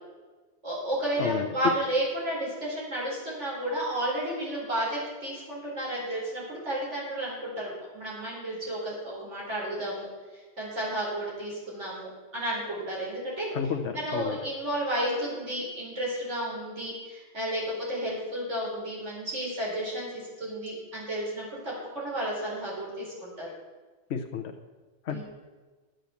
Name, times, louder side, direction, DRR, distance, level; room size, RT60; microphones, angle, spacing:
voice 1, 0.6-10.1 10.3-13.5 13.9-20.1 20.4-23.5 25.1-25.2, right 1 dB, 90° right, -5 dB, 4.8 m, -32 dB
voice 2, 13.5-14.4 24.1-24.5 25.0-25.2, left 7 dB, 70° left, 4 dB, 1.1 m, -31 dB
12.0 x 7.8 x 7.0 m, 1.3 s
omnidirectional pair, 1.2 m